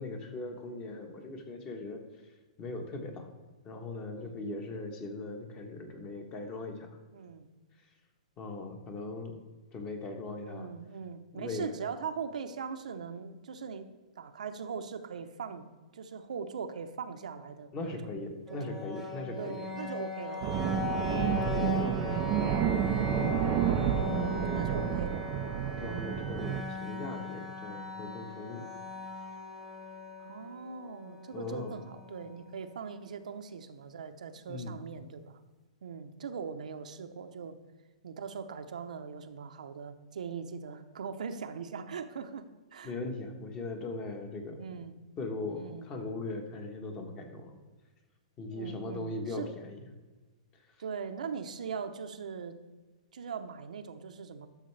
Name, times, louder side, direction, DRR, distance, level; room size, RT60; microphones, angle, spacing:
voice 1, 0.0-2.3 2.6-3.3 3.6-6.9 8.4-9.4 9.7-10.7 11.3-11.8 17.7-19.7 21.1-25.0 25.8-28.6 31.3-31.7 34.4-34.7 42.8-44.6 45.2-47.5 48.4-49.8, left 2 dB, 20° left, 5 dB, 1.1 m, -39 dB
voice 2, 4.1-4.5 7.1-7.5 10.4-13.9 14.2-15.7 15.9-18.0 19.4-21.0 24.0-25.2 30.2-35.4 35.8-37.6 38.0-42.9 44.6-45.0 45.5-45.9 48.5-49.5 50.8-52.6 53.1-54.5, right 6 dB, 90° right, 7 dB, 0.8 m, -41 dB
sound 1, 18.5-32.4, left 5 dB, ahead, 1.0 m, -39 dB
sound 2, 20.4-26.6, right 12 dB, 30° right, 0.3 m, -30 dB
11.5 x 6.4 x 3.3 m, 1.3 s
hypercardioid pair, 160°, 4 cm